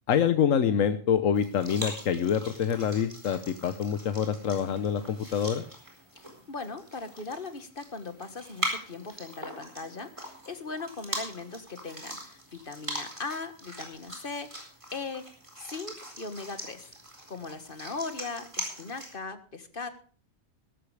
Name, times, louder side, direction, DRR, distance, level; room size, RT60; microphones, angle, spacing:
voice 1, 0.1-5.6, left 8 dB, 85° left, 10 dB, 1.3 m, -26 dB
sound 1, 1.3-19.1, equal, 25° right, 4.2 m, -41 dB
voice 2, 6.1-15.2 15.6-16.9 17.3-19.9, left 4 dB, 45° left, 9 dB, 1.6 m, -39 dB
16.5 x 13.5 x 3.3 m, 0.41 s
omnidirectional pair, 1.3 m